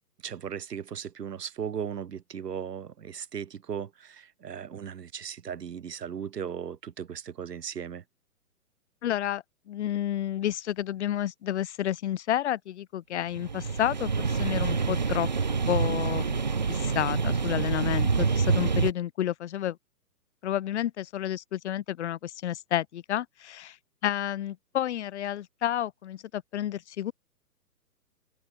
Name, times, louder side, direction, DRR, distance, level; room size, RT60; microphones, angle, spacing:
voice 1, 0.2-8.0, right 8 dB, 90° right, 0.9 m, -37 dB
voice 2, 9.0-15.3 15.7-19.8 20.4-23.8 24.0-27.1, left 11 dB, 45° left, 1.1 m, -30 dB
sound 1, 13.3-18.9, right 5 dB, 30° right, 0.4 m, -27 dB
open air
hypercardioid pair, 135°, 47 cm